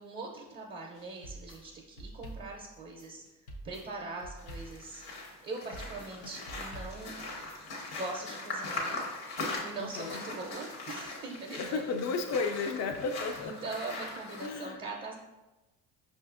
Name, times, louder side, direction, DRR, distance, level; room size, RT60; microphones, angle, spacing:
voice 1, 0.0-3.2 3.6-7.2 7.9-9.0 9.6-11.9 13.4-15.1, right 3 dB, 25° right, 0 dB, 0.5 m, -41 dB
sound 1, 0.9-7.8, right 1 dB, 90° left, 0.7 m, -47 dB
sound 2, 4.4-14.5, left 2 dB, 70° left, 1.2 m, -40 dB
voice 2, 9.8-10.2 11.6-13.7 14.4-14.8, left 4 dB, 45° left, 6 dB, 0.5 m, -33 dB
5.3 x 2.5 x 2.4 m, 1.1 s
supercardioid pair, 85°, 39 cm